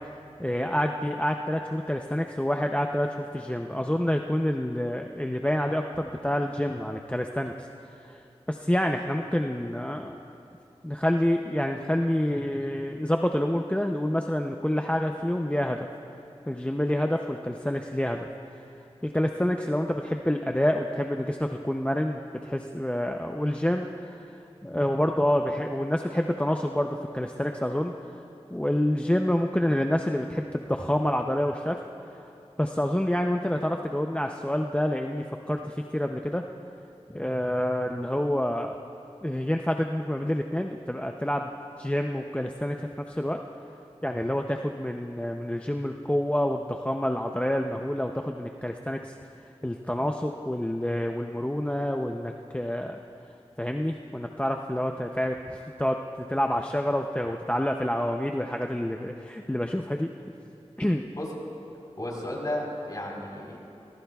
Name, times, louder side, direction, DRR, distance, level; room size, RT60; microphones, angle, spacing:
voice 1, 0.4-7.5 8.0-8.2 8.5-10.2 10.8-15.9 16.5-18.3 19.0-24.3 24.6-27.9 28.5-31.8 32.6-36.4 37.1-38.8 39.2-41.5 41.8-43.4 44.0-49.1 49.6-53.0 53.6-60.1 60.8-61.0, left 1 dB, 10° left, 3 dB, 0.6 m, -28 dB
voice 2, 62.0-63.6, left 1 dB, 35° left, -2 dB, 3.9 m, -33 dB
25.0 x 19.0 x 2.3 m, 2.8 s
wide cardioid pair, 65°, 11 cm